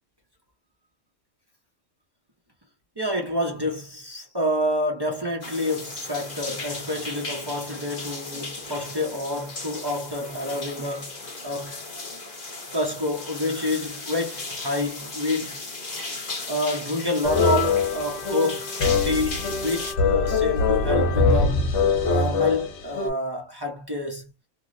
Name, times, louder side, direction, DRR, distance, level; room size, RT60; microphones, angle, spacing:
voice 1, 3.0-11.2 11.4-11.8 12.7-15.6 16.5-18.8 19.0-21.6 22.0-24.3, left 1 dB, 30° right, 0.5 m, -28 dB
sound 1, 5.4-19.9, left 3 dB, 40° left, 0.9 m, -36 dB
sound 2, 17.2-23.1, left 4 dB, 70° left, 1.0 m, -23 dB
3.0 x 2.0 x 2.5 m
omnidirectional pair, 1.3 m